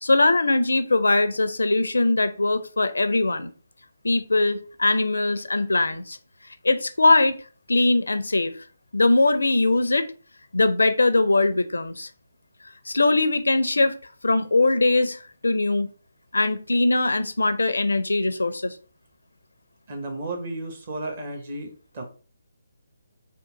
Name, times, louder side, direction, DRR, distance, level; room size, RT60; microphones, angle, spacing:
voice 1, 0.0-3.5 4.0-6.2 6.6-7.4 7.7-8.6 8.9-10.1 10.5-12.1 12.9-13.9 14.2-15.9 16.3-18.7, left 2 dB, 65° left, 0.4 m, -21 dB
voice 2, 19.9-22.0, right 2 dB, 40° right, 1.0 m, -33 dB
3.6 x 2.4 x 3.8 m
figure-of-eight pair, 145°, 0 cm